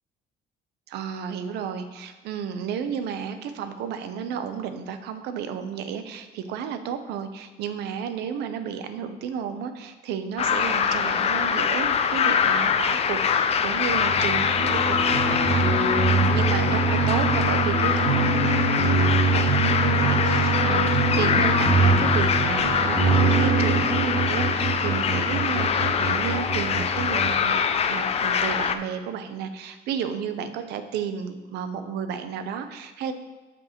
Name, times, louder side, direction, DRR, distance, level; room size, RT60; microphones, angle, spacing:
voice 1, 0.9-27.6 27.9-33.1, right 7 dB, 80° right, 9 dB, 0.6 m, -32 dB
sound 1, 10.4-28.7, left 7 dB, 40° left, 0.4 m, -24 dB
sound 2, 13.9-27.3, right 3 dB, 20° right, 2.3 m, -24 dB
12.5 x 5.2 x 2.9 m, 1.2 s
cardioid pair, 110°, 17 cm